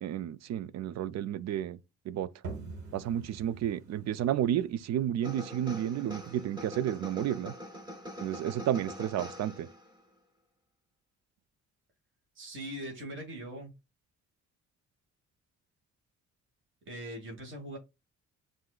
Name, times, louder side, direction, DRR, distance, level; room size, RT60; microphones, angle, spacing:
voice 1, 0.0-1.8 2.1-2.3 2.9-7.5 8.2-9.7, right 11 dB, 60° right, 0.5 m, -31 dB
sound 1, 2.4-7.9, right 3 dB, 75° right, 1.6 m, -47 dB
sound 2, 5.2-10.0, left 1 dB, 15° right, 1.0 m, -44 dB
voice 2, 12.3-13.7 16.8-17.8, equal, 40° right, 1.6 m, -41 dB
7.3 x 2.6 x 2.3 m
cardioid pair, 90°, 30 cm